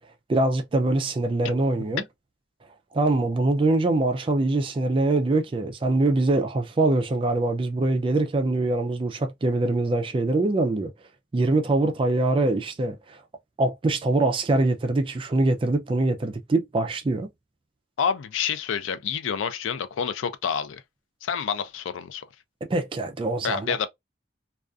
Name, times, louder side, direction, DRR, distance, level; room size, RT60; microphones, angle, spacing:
voice 1, 0.3-2.0 2.9-10.9 11.3-13.2 13.6-17.3 22.7-23.8, right 2 dB, 25° right, 0.3 m, -23 dB
voice 2, 18.0-20.8 21.2-22.2 23.4-23.9, left 7 dB, 90° left, 0.4 m, -28 dB
2.4 x 2.3 x 2.3 m
head